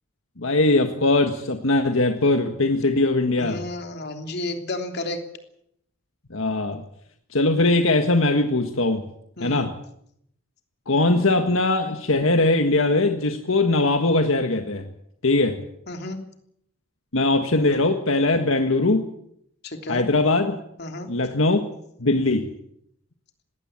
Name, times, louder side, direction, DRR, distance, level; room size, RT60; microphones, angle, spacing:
voice 1, 0.4-3.6 6.3-6.8 7.3-9.0 9.4-9.7 10.9-14.8 15.2-15.6 17.1-19.0 19.9-20.6 21.1-21.6 22.0-22.5, left 2 dB, 75° left, 6 dB, 1.7 m, -21 dB
voice 2, 3.4-5.2 9.4-9.7 15.9-16.2 19.6-20.0 20.8-21.1, left 2 dB, 50° left, 5 dB, 3.2 m, -32 dB
20.0 x 17.5 x 8.8 m, 0.72 s
head